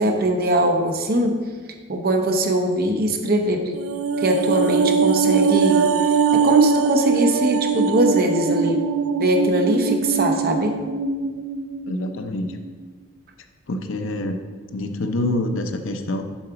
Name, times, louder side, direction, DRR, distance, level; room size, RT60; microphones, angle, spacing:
voice 1, 0.0-1.3 1.9-3.8 4.2-5.9 6.3-8.8 9.2-10.7, right 1 dB, 50° right, 4 dB, 0.8 m, -21 dB
sound 1, 3.7-12.2 12.5-12.6, right 5 dB, 75° right, 0.4 m, -21 dB
voice 2, 11.9-12.6 13.7-14.4 14.7-16.2, left 1 dB, 70° left, 7 dB, 0.6 m, -26 dB
7.2 x 3.9 x 5.7 m, 1.5 s
head